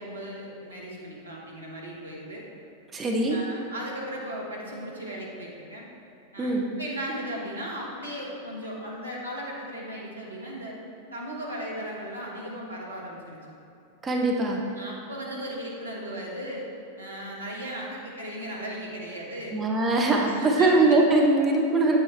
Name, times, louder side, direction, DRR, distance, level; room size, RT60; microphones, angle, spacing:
voice 1, 0.0-2.4 3.2-5.9 6.3-6.5 6.8-10.8 11.1-13.4 14.8-16.7 17.0-19.6 20.1-21.0, equal, 80° right, -4 dB, 1.6 m, -36 dB
voice 2, 2.9-3.4 6.4-6.7 14.0-14.6 19.5-22.0, right 2 dB, 15° right, -1 dB, 0.9 m, -22 dB
8.8 x 8.7 x 3.3 m, 2.9 s
figure-of-eight pair, 90°, 0 cm